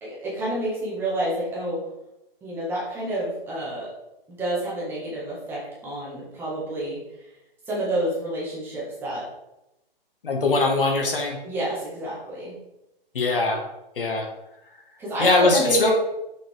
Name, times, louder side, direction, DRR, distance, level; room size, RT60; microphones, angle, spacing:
voice 1, 0.0-1.9 2.4-3.9 4.3-7.3 7.7-9.3 11.4-12.5 15.0-15.9, right 1 dB, 5° right, -7 dB, 1.8 m, -29 dB
voice 2, 10.2-11.4 13.1-13.6 14.0-14.3 15.2-15.9, left 3 dB, 65° left, 1 dB, 1.9 m, -21 dB
7.0 x 5.8 x 3.7 m, 0.90 s
hypercardioid pair, 160°, 30 cm